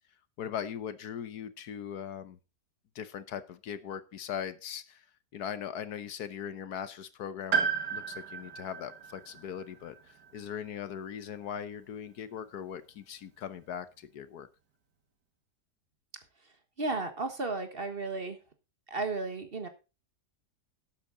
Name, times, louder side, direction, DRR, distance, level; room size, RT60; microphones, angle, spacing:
voice 1, 0.4-2.4 2.9-5.0 5.3-14.5, left 8 dB, 75° left, 13 dB, 1.4 m, -40 dB
Piano, 7.5-11.7 12.9-13.0, right 6 dB, 80° right, 2.4 m, -35 dB
voice 2, 16.8-18.4 18.9-19.7, right 3 dB, 35° right, 8 dB, 1.6 m, -33 dB
12.5 x 8.6 x 3.8 m, 0.29 s
omnidirectional pair, 1.7 m